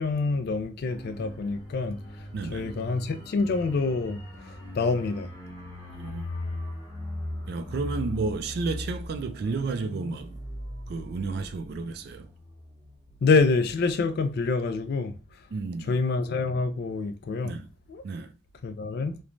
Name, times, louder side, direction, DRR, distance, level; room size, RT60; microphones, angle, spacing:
voice 1, 0.0-2.0 2.5-4.2 4.5-5.3 13.2-15.1 15.9-17.6 17.9-18.0 18.6-19.2, left 4 dB, 55° left, 0.3 m, -26 dB
sound 1, 0.9-13.2 13.5-13.7, left 1 dB, 15° left, 0.9 m, -39 dB
voice 2, 2.3-2.7 5.9-6.2 7.5-10.4 10.9-12.3 15.5-15.9 17.4-17.7 18.0-18.3, right 4 dB, 55° right, 0.3 m, -32 dB
3.1 x 2.1 x 2.5 m
head